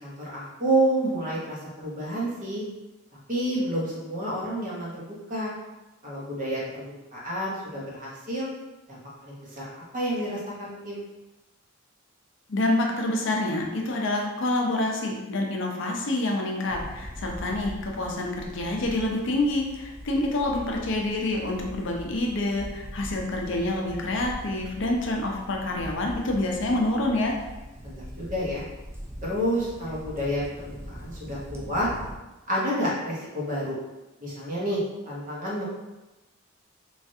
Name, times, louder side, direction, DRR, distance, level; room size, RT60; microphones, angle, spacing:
voice 1, 0.0-2.6 3.3-5.5 6.0-6.9 7.1-8.5 8.9-11.0 27.8-28.6 29.2-31.9 32.5-33.8 34.2-35.7, right 1 dB, 40° right, -6 dB, 0.9 m, -29 dB
voice 2, 12.5-27.4, left 2 dB, 60° left, 0 dB, 0.5 m, -27 dB
sound 1, 16.7-32.2, equal, 10° right, 0.3 m, -41 dB
3.1 x 2.4 x 2.6 m, 1.0 s
head